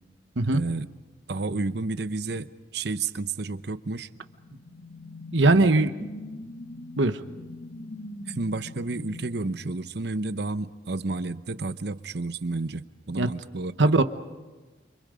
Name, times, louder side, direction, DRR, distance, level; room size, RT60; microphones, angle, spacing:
voice 1, 0.5-0.9 1.3-4.1 5.5-5.7 8.3-13.9, right 3 dB, 60° right, 13 dB, 0.8 m, -31 dB
sound 1, 4.1-10.5, left 2 dB, 50° left, 1.0 m, -42 dB
voice 2, 5.3-5.9 7.0-7.2 13.2-13.3 13.8-14.0, right 2 dB, 80° right, 10 dB, 1.1 m, -20 dB
29.5 x 26.0 x 5.1 m, 1.3 s
head